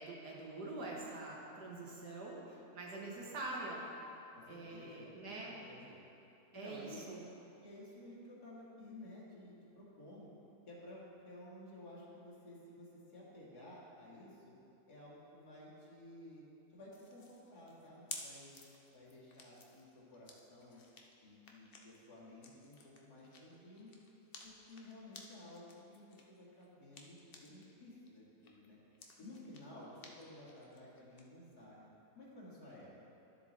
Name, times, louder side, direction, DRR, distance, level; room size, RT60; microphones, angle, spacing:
voice 1, 0.0-3.8 4.5-5.6 6.5-7.2, right 2 dB, 85° right, -3 dB, 2.1 m, -45 dB
voice 2, 4.3-5.3 5.6-6.0 6.5-7.0 7.6-10.3 10.7-14.5 14.9-16.4 16.7-18.5 18.9-20.8 21.2-23.9 24.4-28.8 29.2-31.9 32.1-32.9, left 1 dB, 75° left, -7 dB, 2.5 m, -54 dB
sound 1, 16.9-27.7 28.1-31.2, left 4 dB, 45° left, 0.8 m, -55 dB
12.5 x 7.0 x 3.9 m, 2.9 s
omnidirectional pair, 1.7 m